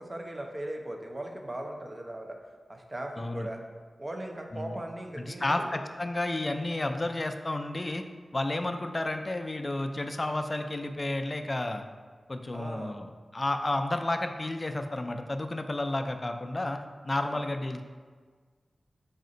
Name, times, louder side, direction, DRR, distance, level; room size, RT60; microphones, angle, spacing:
voice 1, 0.0-2.4 2.7-3.6 4.0-5.7 12.5-13.0 17.2-17.5, right 1 dB, 30° right, 2 dB, 0.5 m, -38 dB
voice 2, 3.2-3.5 4.5-4.8 5.2-8.0 8.3-11.8 12.3-17.8, left 2 dB, 35° left, 6 dB, 0.3 m, -31 dB
4.1 x 2.5 x 3.8 m, 1.5 s
cardioid pair, 45°, 0 cm